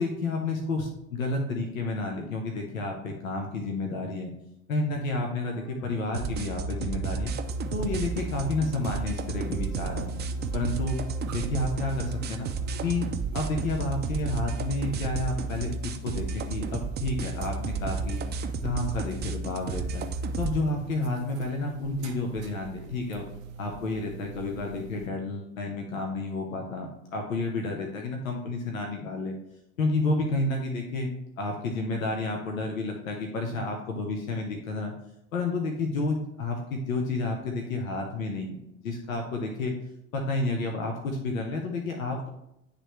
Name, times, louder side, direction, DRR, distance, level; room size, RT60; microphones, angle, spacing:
voice 1, 0.0-4.3 4.7-7.3 7.7-10.2 10.5-11.0 11.3-12.5 12.8-13.0 13.3-18.2 18.6-20.1 20.4-23.2 23.6-29.4 29.8-34.9 35.3-39.7 40.1-42.3, left 2 dB, 75° left, 2 dB, 0.9 m, -30 dB
sound 1, 5.4-12.9, right 2 dB, 5° left, 1.0 m, -54 dB
sound 2, 6.1-20.6, right 4 dB, 25° right, 0.5 m, -32 dB
sound 3, 7.4-25.1, right 6 dB, 75° right, 0.7 m, -44 dB
9.8 x 3.3 x 3.1 m, 0.86 s
figure-of-eight pair, 70°, 41 cm